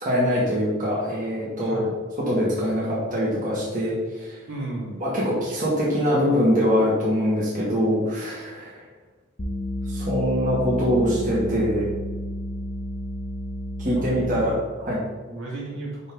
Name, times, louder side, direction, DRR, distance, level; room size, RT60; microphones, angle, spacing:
voice 1, 0.0-1.9 2.3-4.4 5.0-8.8 9.9-11.8 13.8-14.6 14.8-15.0, equal, 40° right, -7 dB, 1.8 m, -23 dB
voice 2, 1.6-1.9 4.5-5.0 14.0-14.4 15.3-16.0, right 2 dB, 65° right, -4 dB, 2.2 m, -34 dB
sound 1, 9.4-14.7, equal, 35° left, 0.9 m, -31 dB
11.0 x 3.8 x 3.8 m, 1.3 s
head